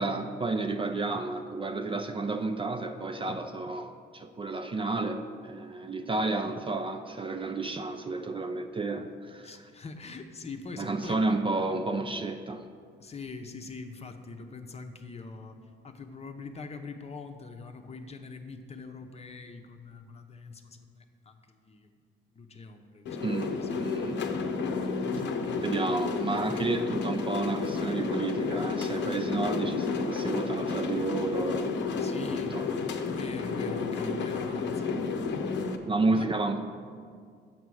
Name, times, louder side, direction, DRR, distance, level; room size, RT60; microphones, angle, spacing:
voice 1, 0.0-9.5 10.8-12.7 23.2-24.4 25.6-32.7 35.9-36.6, right 3 dB, 25° right, 6 dB, 0.5 m, -31 dB
voice 2, 9.4-11.3 13.0-21.9 22.3-23.3 23.6-23.7 32.0-32.6 33.1-35.7 36.2-36.3, left 4 dB, 30° left, 5 dB, 0.7 m, -43 dB
sound 1, 23.1-35.8, left 4 dB, 65° left, 0.8 m, -31 dB
7.4 x 5.8 x 6.2 m, 2.1 s
cardioid pair, 90°, 20 cm